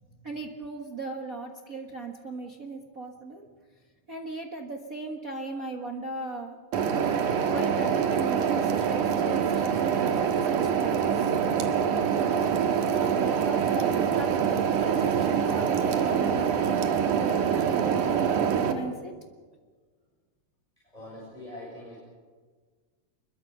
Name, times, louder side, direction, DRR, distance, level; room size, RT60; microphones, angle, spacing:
voice 1, 0.2-3.5 4.1-6.6 7.4-11.3 11.9-14.3 14.6-16.7 17.2-19.1, right 3 dB, 50° right, 1 dB, 1.0 m, -37 dB
sound 1, 6.7-18.7, right 7 dB, 65° right, 2.9 m, -25 dB
voice 2, 20.9-22.0, left 1 dB, 10° left, -4 dB, 6.5 m, -44 dB
25.5 x 22.5 x 6.7 m, 1.5 s
omnidirectional pair, 4.0 m